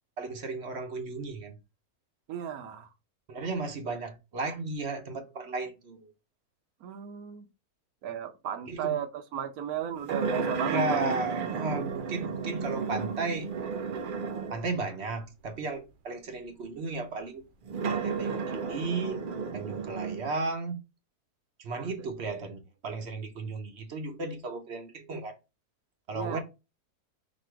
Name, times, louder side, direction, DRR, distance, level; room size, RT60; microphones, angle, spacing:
voice 1, 0.2-1.6 3.3-6.1 8.7-9.0 10.7-13.5 14.5-17.4 17.9-19.2 19.5-20.8 21.6-25.4 26.1-26.4, right 3 dB, 50° right, 0.9 m, -34 dB
voice 2, 2.3-2.9 6.8-7.5 8.0-11.1 19.7-19.9 21.7-21.9 26.1-26.4, right 9 dB, 70° right, 1.2 m, -35 dB
sound 1, 10.1-14.7 15.4-15.5 17.6-20.3, right 5 dB, 85° right, 0.4 m, -33 dB
4.2 x 2.7 x 4.5 m
omnidirectional pair, 1.6 m